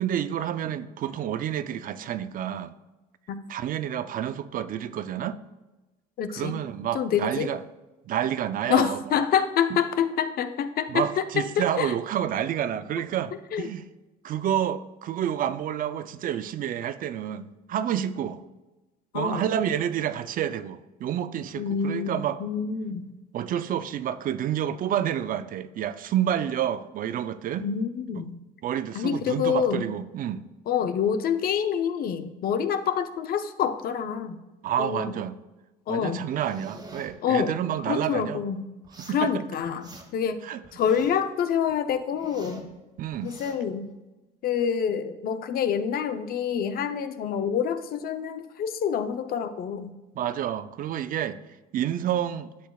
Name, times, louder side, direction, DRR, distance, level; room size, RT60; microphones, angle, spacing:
voice 1, 0.0-2.7 3.5-5.4 6.3-7.6 8.1-9.2 10.9-13.9 14.2-18.4 19.1-22.4 23.3-27.6 28.6-30.4 34.6-35.4 35.9-38.4 39.0-39.3 40.4-40.6 43.0-43.3 50.2-51.4 51.7-52.5, right 10 dB, 55° right, 13 dB, 0.5 m, -29 dB
voice 2, 6.2-6.6 6.9-7.5 8.7-11.9 13.5-13.7 19.1-19.5 21.6-23.1 27.6-28.4 28.9-29.9 30.7-34.4 34.8-35.1 35.9-36.3 37.2-37.5 37.9-38.6 39.1-40.4 40.7-42.6 43.2-43.9 44.4-49.9, left 8 dB, 60° left, 10 dB, 0.7 m, -27 dB
sound 1, 36.4-37.1 38.8-39.3 39.6-40.3 40.6-41.3 41.7-42.7 43.1-43.6, right 2 dB, 25° right, 1.5 m, -46 dB
12.0 x 7.1 x 2.3 m, 1.1 s
cardioid pair, 110°, 17 cm